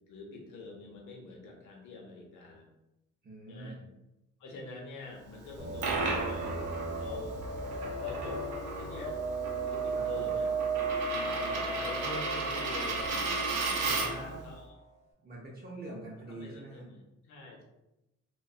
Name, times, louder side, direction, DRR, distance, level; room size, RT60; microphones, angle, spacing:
voice 1, 0.1-2.7 3.5-3.8 4.4-6.7 6.9-7.4 8.0-8.4 8.8-9.2 9.7-10.5 11.5-13.2 13.9-14.8 16.3-17.6, left 3 dB, 80° left, 0 dB, 0.7 m, -45 dB
voice 2, 3.2-3.9 9.9-10.3 11.0-11.7 13.8-14.4 15.2-16.9, right 2 dB, 30° right, -4 dB, 0.6 m, -46 dB
Coin (dropping), 5.5-14.3, right 3 dB, 85° right, 0.6 m, -35 dB
sound 1, 5.6-14.8, right 3 dB, 20° left, 0.6 m, -36 dB
2.5 x 2.2 x 2.3 m, 0.93 s
cardioid pair, 90°, 30 cm